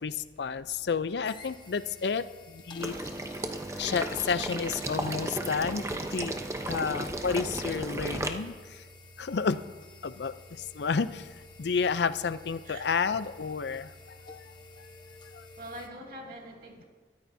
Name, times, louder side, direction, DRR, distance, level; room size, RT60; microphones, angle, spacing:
voice 1, 0.0-2.2 2.5-2.9 3.8-6.4 6.7-8.5 9.2-9.6 10.0-10.3 10.8-11.2 11.6-13.9 14.3-14.4, left 5 dB, 70° left, 13 dB, 0.5 m, -30 dB
sound 1, 1.2-15.9, left 2 dB, 25° left, 1.1 m, -51 dB
Water / Liquid, 2.8-8.3, right 2 dB, 15° right, 0.8 m, -34 dB
voice 2, 15.6-16.8, right 1 dB, 55° right, -1 dB, 2.4 m, -43 dB
22.5 x 13.5 x 2.7 m, 1.4 s
head